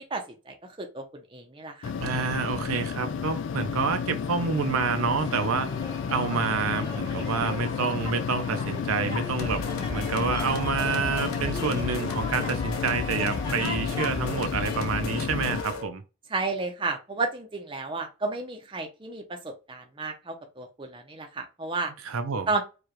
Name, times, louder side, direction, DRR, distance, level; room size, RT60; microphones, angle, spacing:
voice 1, 0.0-1.9 16.3-21.9 22.5-22.6, right 3 dB, 25° right, 0.6 m, -32 dB
sound 1, 1.8-15.6, left 6 dB, 60° left, 0.3 m, -32 dB
voice 2, 2.0-5.7 6.1-9.6 9.9-16.0 22.0-22.5, right 5 dB, 80° right, 0.6 m, -28 dB
sound 2, 5.0-14.8, left 3 dB, 20° left, 1.0 m, -38 dB
sound 3, 9.4-15.9, left 3 dB, 80° left, 0.7 m, -35 dB
4.8 x 2.4 x 3.0 m
head